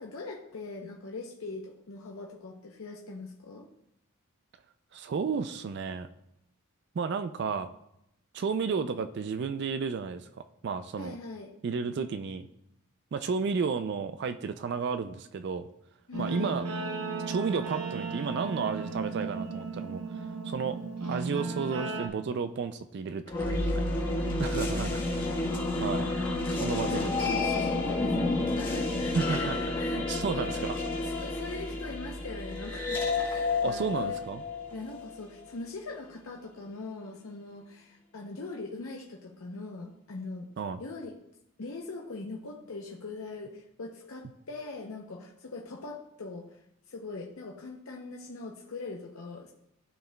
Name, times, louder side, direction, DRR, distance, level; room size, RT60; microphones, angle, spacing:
voice 1, 0.0-3.7 11.0-11.5 16.1-16.5 24.5-24.7 26.6-30.5 31.0-34.2 34.7-40.5 40.8-41.1 41.6-46.6 46.9-49.5, left 3 dB, 65° left, 0 dB, 0.7 m, -41 dB
voice 2, 4.9-6.1 7.0-7.7 8.3-10.3 10.6-11.2 11.6-12.5 13.1-15.7 16.2-16.6 17.3-20.0 20.4-20.8 21.1-23.8 24.4-25.4 25.8-26.1 26.5-27.3 29.1-29.6 29.9-30.8 33.6-34.4 40.6-40.8, right 5 dB, 50° right, 10 dB, 0.3 m, -32 dB
Guitar, 16.1-22.1, right 3 dB, 85° right, 0.8 m, -35 dB
sound 1, 23.3-35.4, left 2 dB, 20° left, 1.2 m, -30 dB
13.0 x 4.6 x 2.2 m, 0.82 s
head